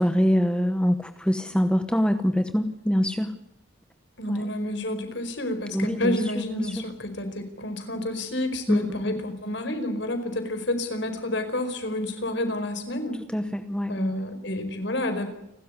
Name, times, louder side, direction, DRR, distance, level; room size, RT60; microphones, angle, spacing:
voice 1, 0.0-3.4 4.3-4.5 5.7-6.2 6.6-6.8 8.7-9.2 13.3-14.2, equal, 5° left, 8 dB, 1.0 m, -24 dB
voice 2, 4.2-13.2 13.9-15.3, left 1 dB, 65° left, 8 dB, 4.8 m, -29 dB
29.5 x 13.5 x 9.6 m, 0.88 s
head